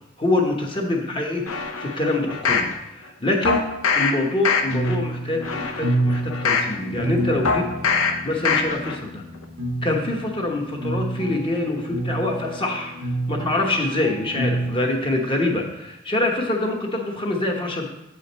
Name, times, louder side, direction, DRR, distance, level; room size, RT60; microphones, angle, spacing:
voice 1, 0.2-1.4 1.8-3.6 3.9-7.7 8.2-9.2 9.8-12.9 13.3-17.9, left 2 dB, 25° left, 1 dB, 0.9 m, -25 dB
sound 1, 1.5-2.7 3.4-4.1 4.4-4.9 5.4-6.7 7.4-8.1 8.4-8.9 9.3-9.4, left 5 dB, 90° left, 0.7 m, -23 dB
sound 2, 4.7-14.9, right 1 dB, 85° right, 0.8 m, -29 dB
7.7 x 5.0 x 4.0 m, 0.86 s
head